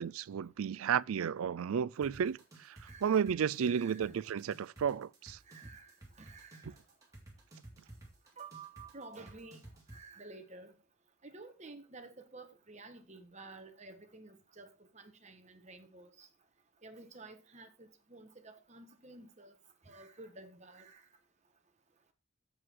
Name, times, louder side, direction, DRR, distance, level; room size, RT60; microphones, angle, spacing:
voice 1, 0.0-5.4, right 7 dB, 85° right, 0.4 m, -33 dB
sound 1, 2.0-10.0, right 1 dB, 15° right, 3.1 m, -53 dB
voice 2, 2.8-3.3 3.6-4.2 5.5-6.8 8.4-9.6 9.9-10.7 11.2-16.3 16.8-19.6 19.8-21.1, right 3 dB, 35° right, 1.5 m, -52 dB
8.0 x 7.8 x 4.6 m
head